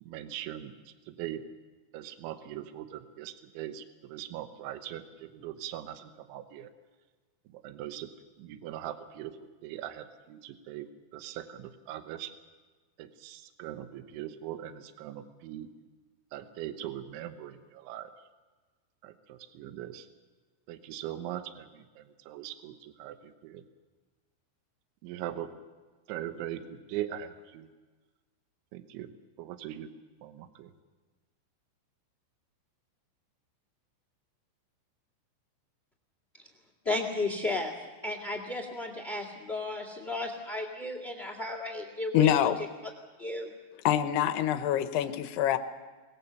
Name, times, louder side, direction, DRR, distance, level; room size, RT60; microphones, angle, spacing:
voice 1, 0.0-1.4 1.9-6.7 7.5-8.1 8.4-12.3 13.0-15.7 16.3-18.1 19.0-20.1 20.7-23.6 25.0-25.5 26.1-27.7 28.7-29.1 29.4-29.9 30.2-30.7, right 12 dB, 80° right, 9 dB, 3.4 m, -41 dB
voice 2, 36.8-37.7 38.0-42.5 43.2-43.5, left 2 dB, 60° left, 5 dB, 0.6 m, -34 dB
voice 3, 42.1-42.6 43.9-45.6, left 11 dB, 75° left, 10 dB, 2.5 m, -25 dB
24.0 x 20.0 x 7.0 m, 1.3 s
omnidirectional pair, 5.5 m